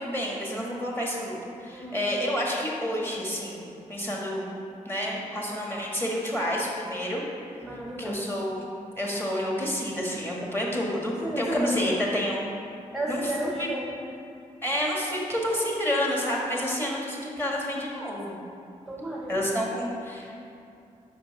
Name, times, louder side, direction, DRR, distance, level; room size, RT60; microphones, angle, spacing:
voice 1, 0.0-1.3 1.6-3.6 3.9-4.5 4.8-7.2 8.0-8.7 9.0-12.5 13.1-13.3 13.6-13.7 14.6-18.4 19.3-20.4, equal, 15° left, -3 dB, 1.6 m, -29 dB
voice 2, 1.7-2.1 7.6-8.4 11.2-12.0 12.9-14.1 16.6-16.7 18.9-19.4, right 1 dB, 5° right, -3 dB, 0.7 m, -33 dB
5.3 x 5.1 x 4.7 m, 2.6 s
cardioid pair, 70°, 14 cm